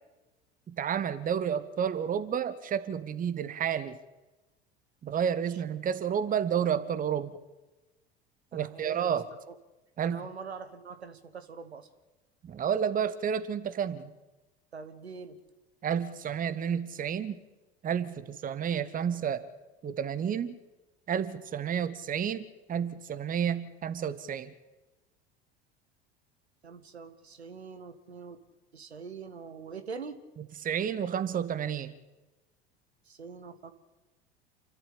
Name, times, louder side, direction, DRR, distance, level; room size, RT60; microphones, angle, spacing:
voice 1, 0.7-4.0 5.0-7.3 8.5-9.3 10.0-10.3 12.4-14.1 15.8-17.4 17.8-19.5 19.8-20.6 21.1-24.5 30.4-31.9, right 8 dB, 25° right, 13 dB, 1.1 m, -31 dB
voice 2, 8.5-9.2 9.5-9.6 10.0-11.9 14.7-15.4 26.6-28.4 28.7-30.2 33.1-33.7, right 5 dB, 80° right, 10 dB, 1.3 m, -43 dB
28.5 x 12.0 x 8.5 m, 1.1 s
figure-of-eight pair, 70°, 32 cm